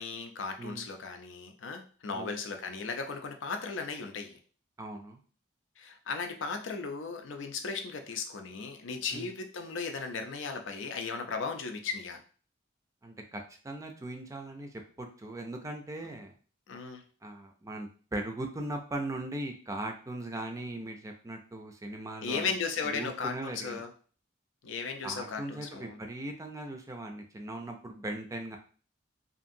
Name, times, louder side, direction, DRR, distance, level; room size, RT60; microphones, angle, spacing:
voice 1, 0.0-4.4 5.8-12.2 16.7-17.0 22.2-23.9 24.6-26.0, left 5 dB, 80° left, 5 dB, 0.5 m, -36 dB
voice 2, 4.8-5.2 9.1-9.3 13.0-14.7 15.0-16.3 17.2-22.4 22.8-23.8 25.0-28.6, right 1 dB, 15° right, 4 dB, 0.4 m, -39 dB
2.8 x 2.5 x 2.6 m, 0.41 s
head